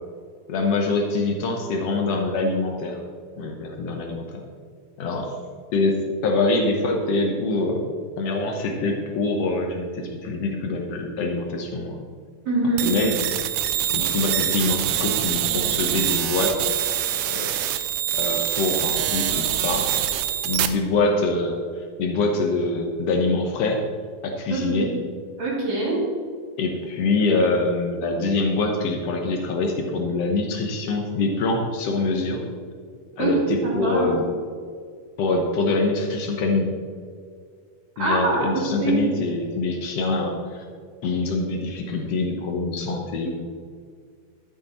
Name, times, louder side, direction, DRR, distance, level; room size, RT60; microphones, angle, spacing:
voice 1, 0.5-3.0 3.4-4.4 5.0-5.3 5.7-12.0 12.8-13.2 13.9-16.7 17.3-17.5 18.2-19.9 20.4-23.8 24.2-24.9 26.6-32.4 33.2-34.2 35.2-36.7 38.0-40.6 41.0-43.4, left 3 dB, 80° left, 2 dB, 1.4 m, -24 dB
voice 2, 12.5-12.9 24.5-24.9 25.4-26.0 33.2-34.1 38.0-39.2, right 2 dB, 50° right, -6 dB, 3.9 m, -23 dB
sound 1, 12.8-20.7, right 11 dB, 80° right, 1.9 m, -25 dB
12.5 x 8.7 x 4.3 m, 2.1 s
omnidirectional pair, 4.3 m